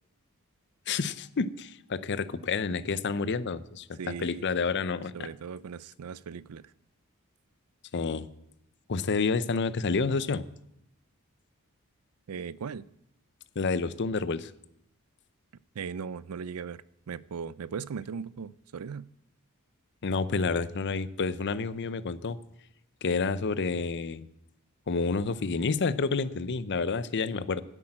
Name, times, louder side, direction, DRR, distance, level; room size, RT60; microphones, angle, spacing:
voice 1, 0.9-5.3 7.9-8.3 8.9-10.4 13.6-14.5 20.0-22.4 23.0-24.3 24.9-27.6, left 4 dB, 55° left, 0.6 m, -29 dB
voice 2, 4.0-4.5 5.1-6.7 12.3-12.8 15.7-19.1, right 6 dB, 80° right, 0.4 m, -38 dB
9.9 x 8.6 x 8.8 m
head